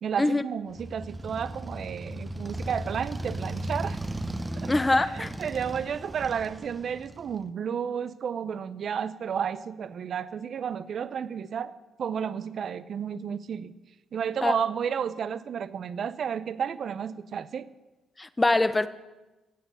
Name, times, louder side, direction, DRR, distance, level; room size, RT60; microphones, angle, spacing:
voice 1, 0.0-4.0 4.6-11.7 12.0-13.7 14.1-17.7, right 7 dB, 55° right, 15 dB, 0.7 m, -32 dB
Motorcycle, 0.7-7.4, right 1 dB, 15° right, 1.0 m, -36 dB
voice 2, 4.7-5.3 14.4-14.6 18.2-18.9, left 2 dB, 15° left, 13 dB, 0.8 m, -23 dB
15.0 x 8.0 x 8.0 m, 1.1 s
cardioid pair, 90°, 0 cm